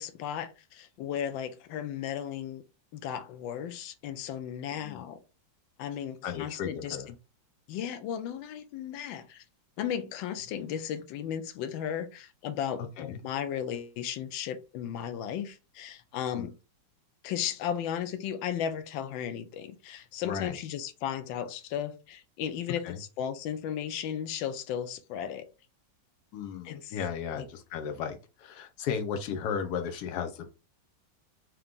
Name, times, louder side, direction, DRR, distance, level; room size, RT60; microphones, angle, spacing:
voice 1, 0.0-2.6 2.9-5.2 5.8-7.0 7.7-9.4 9.8-16.5 17.2-25.5 26.6-26.9 27.3-27.4, left 9 dB, 85° left, 1.4 m, -35 dB
voice 2, 4.8-5.1 6.2-7.1 12.8-13.2 16.3-16.5 20.2-20.6 22.8-23.0 26.3-30.5, left 7 dB, 65° left, 1.2 m, -35 dB
3.8 x 3.0 x 3.5 m
omnidirectional pair, 2.0 m